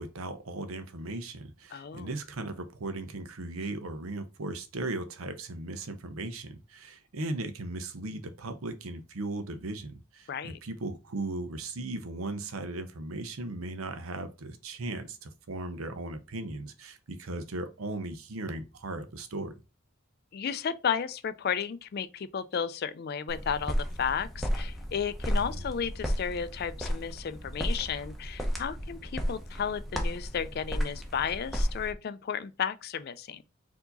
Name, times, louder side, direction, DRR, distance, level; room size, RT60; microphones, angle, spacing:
voice 1, 0.0-19.5 25.3-25.6, right 2 dB, 90° right, 0.7 m, -37 dB
voice 2, 1.7-2.1 10.3-10.6 20.3-33.4, left 7 dB, 50° left, 0.3 m, -33 dB
sound 1, 23.3-31.9, equal, ahead, 0.7 m, -33 dB
4.6 x 2.8 x 3.9 m
head